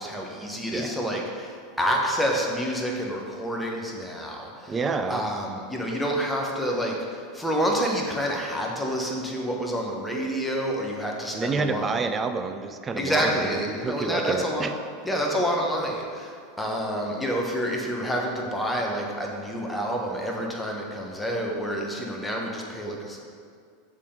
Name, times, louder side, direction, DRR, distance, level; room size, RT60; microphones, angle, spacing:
voice 1, 0.0-4.8 5.1-12.0 13.0-14.7 15.0-23.2, equal, 5° left, -1 dB, 1.1 m, -28 dB
voice 2, 4.7-5.3 11.3-14.7, right 4 dB, 25° right, 7 dB, 0.4 m, -28 dB
6.6 x 3.7 x 5.2 m, 2.2 s
hypercardioid pair, 100°, 0 cm